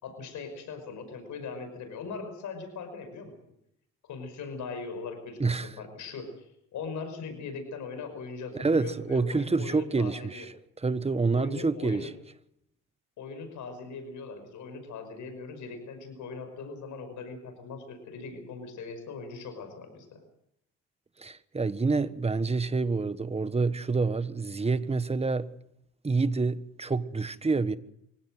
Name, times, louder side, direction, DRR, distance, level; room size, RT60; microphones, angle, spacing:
voice 1, 0.0-3.3 4.1-10.5 11.3-12.1 13.2-20.2, left 4 dB, 75° left, 5.6 m, -40 dB
voice 2, 5.4-5.7 8.5-10.5 10.8-12.1 21.2-25.5 26.0-27.8, right 4 dB, 20° right, 1.3 m, -27 dB
24.5 x 16.5 x 7.8 m
cardioid pair, 90°, 30 cm